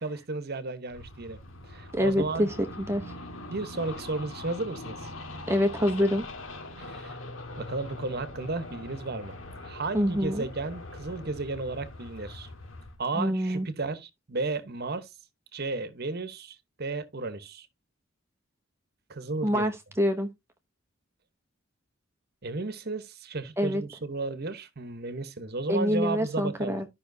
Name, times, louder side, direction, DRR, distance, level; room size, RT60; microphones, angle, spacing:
voice 1, 0.0-1.4 1.6-2.5 3.5-5.1 6.8-7.1 7.6-12.5 13.0-15.1 15.5-17.7 19.1-19.7 22.4-26.8, right 3 dB, 50° right, 1.0 m, -34 dB
sound 1, 0.9-13.0, left 2 dB, 75° left, 1.7 m, -42 dB
voice 2, 1.9-3.0 5.5-6.3 9.9-10.4 13.2-13.7 19.4-20.3 23.6-23.8 25.7-26.9, equal, 10° right, 0.7 m, -26 dB
12.5 x 5.7 x 2.7 m
head